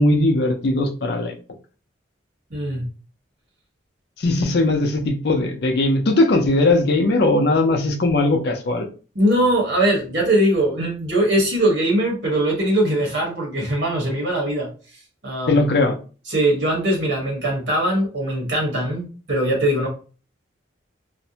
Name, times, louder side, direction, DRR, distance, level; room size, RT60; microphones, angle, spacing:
voice 1, 0.0-1.3 4.2-8.9 15.5-15.9, left 2 dB, 55° left, 4 dB, 0.5 m, -19 dB
voice 2, 2.5-2.8 9.1-14.7 15.2-15.7 16.3-19.9, right 1 dB, 70° right, -2 dB, 1.1 m, -21 dB
2.5 x 2.0 x 2.7 m, 0.37 s
head